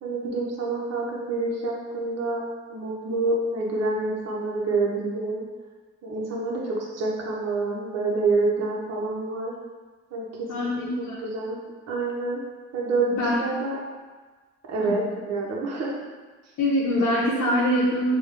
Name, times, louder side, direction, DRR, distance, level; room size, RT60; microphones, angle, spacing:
voice 1, 0.0-2.4 2.7-5.4 6.0-9.5 10.1-10.8 11.2-11.6 11.9-12.4 12.7-13.8 14.7-15.9, right 3 dB, 60° right, -3 dB, 0.8 m, -27 dB
voice 2, 10.5-11.2 13.1-13.3 14.8-15.0 16.6-18.2, left 1 dB, 55° left, -7 dB, 0.8 m, -24 dB
3.5 x 2.3 x 3.3 m, 1.4 s
cardioid pair, 90°, 30 cm